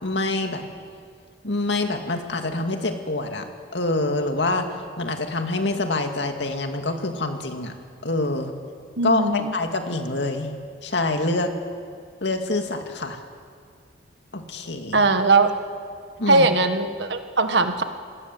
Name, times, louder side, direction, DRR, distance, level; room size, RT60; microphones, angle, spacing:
voice 1, 0.0-0.6 1.4-4.7 5.0-7.7 8.0-8.5 9.0-10.5 10.8-11.5 12.2-13.2 14.3-15.1 16.2-16.5, left 2 dB, 75° left, 5 dB, 2.3 m, -26 dB
voice 2, 9.0-9.5 14.9-15.5 16.3-17.8, right 3 dB, 75° right, 8 dB, 1.6 m, -20 dB
26.5 x 19.0 x 7.8 m, 2.1 s
head